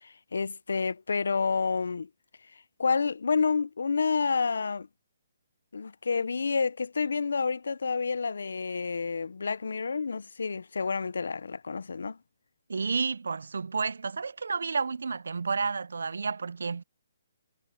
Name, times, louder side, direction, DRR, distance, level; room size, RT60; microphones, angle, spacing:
voice 1, 0.0-2.1 2.8-4.9 5.7-12.2, left 5 dB, 85° left, 0.6 m, -29 dB
voice 2, 12.7-16.8, right 4 dB, 85° right, 0.4 m, -31 dB
hypercardioid pair, 175°, 0 cm